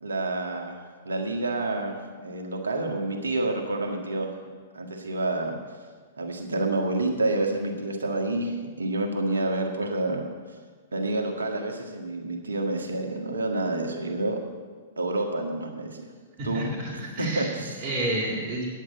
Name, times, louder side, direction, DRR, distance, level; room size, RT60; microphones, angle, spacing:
voice 1, 0.0-4.3 4.7-5.6 6.2-10.3 10.9-14.4 15.0-16.1 16.4-16.7 17.2-17.8, right 2 dB, 75° right, 3 dB, 1.6 m, -28 dB
voice 2, 16.4-18.7, right 1 dB, 35° right, -5 dB, 2.8 m, -30 dB
9.5 x 8.4 x 7.7 m, 1.5 s
figure-of-eight pair, 105°, 0 cm